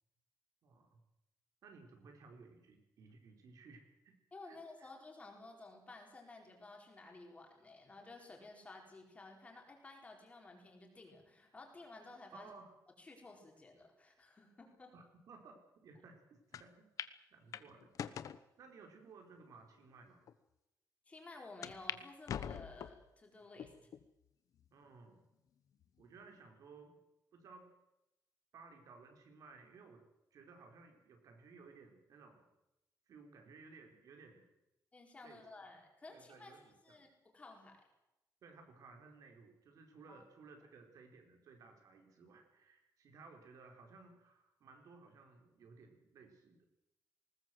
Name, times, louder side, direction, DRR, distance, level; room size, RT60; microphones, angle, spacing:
voice 1, 0.6-1.0 1.6-4.2 4.4-4.9 12.3-12.7 14.9-16.9 17.3-17.9 18.6-20.3 23.6-23.8 24.7-25.2 26.0-27.0 27.3-27.7 28.5-30.0 30.3-32.5 33.1-34.5 35.2-35.4 36.1-37.1 38.4-46.7, right 4 dB, 65° right, 4 dB, 4.5 m, -58 dB
voice 2, 4.3-12.5 13.0-14.9 21.1-23.9 34.9-36.5 36.8-37.1 37.3-37.8 40.1-40.2, left 2 dB, 20° left, 2 dB, 4.4 m, -54 dB
sound 1, 16.5-16.6 17.0-17.1 17.5-18.4 19.1-19.2 19.9-20.0 20.3-20.4 21.6-22.0 22.3-23.0 23.6-24.0 24.6-24.7 25.8-26.2, left 9 dB, 65° left, 1.0 m, -43 dB
19.5 x 19.5 x 7.9 m, 0.91 s
wide cardioid pair, 180°, 6 cm